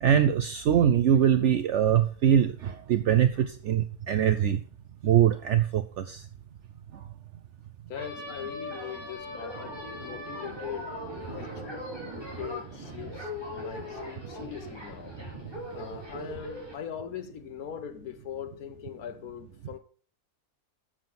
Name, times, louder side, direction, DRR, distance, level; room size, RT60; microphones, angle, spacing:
voice 1, 0.0-4.6 5.0-6.2 6.9-7.1, right 9 dB, 65° right, 0.8 m, -23 dB
voice 2, 7.9-11.9 12.4-15.2 15.7-19.8, left 9 dB, 90° left, 1.5 m, -41 dB
sound 1, 7.9-16.7, equal, 15° right, 3.9 m, -39 dB
7.3 x 7.3 x 5.9 m
omnidirectional pair, 1.5 m